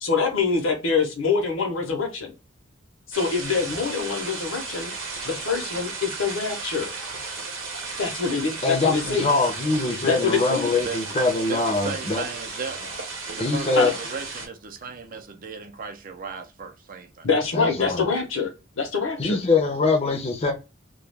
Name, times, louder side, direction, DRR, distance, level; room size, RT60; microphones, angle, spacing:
voice 1, 0.0-2.3 3.1-4.9 5.2-6.9 8.0-9.4 10.0-10.8 13.8-13.9 17.2-18.5 18.8-19.4, left 5 dB, 70° left, 0.8 m, -25 dB
sound 1, 3.1-14.5, right 4 dB, 75° right, 0.8 m, -34 dB
voice 2, 8.6-12.2 13.4-13.9 17.5-18.1 19.2-20.5, left 3 dB, 30° left, 0.6 m, -23 dB
voice 3, 10.8-11.2 11.5-12.9 13.4-17.3, right 4 dB, 45° right, 0.5 m, -36 dB
2.3 x 2.3 x 3.2 m
head